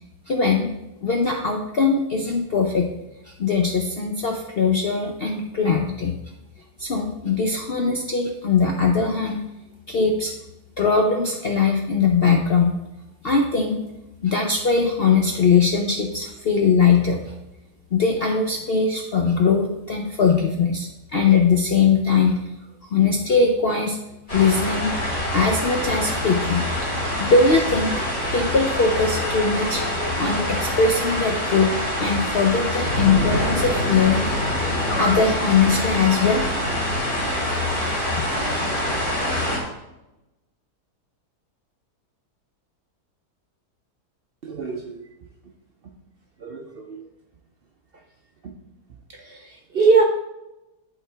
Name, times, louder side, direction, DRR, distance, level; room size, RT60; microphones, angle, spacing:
voice 1, 0.3-0.7 1.0-2.9 3.3-6.1 6.8-9.4 9.9-10.3 10.8-12.8 13.2-13.8 14.2-17.3 17.9-22.4 22.9-24.0 24.3-24.9 25.3-26.6 27.2-29.8 30.2-31.7 32.0-34.3 34.9-36.4, left 5 dB, 60° left, 2 dB, 0.6 m, -20 dB
sound 1, 24.3-39.6, left 1 dB, 25° left, 2.9 m, -25 dB
sound 2, 29.0-29.4 29.8-30.6 34.8-35.3, left 3 dB, 80° left, 1.7 m, -32 dB
voice 2, 44.4-45.0 46.4-47.0 48.4-48.5 49.1-50.0, right 4 dB, 60° right, 1 dB, 0.6 m, -22 dB
11.0 x 4.3 x 3.3 m, 0.94 s
omnidirectional pair, 1.8 m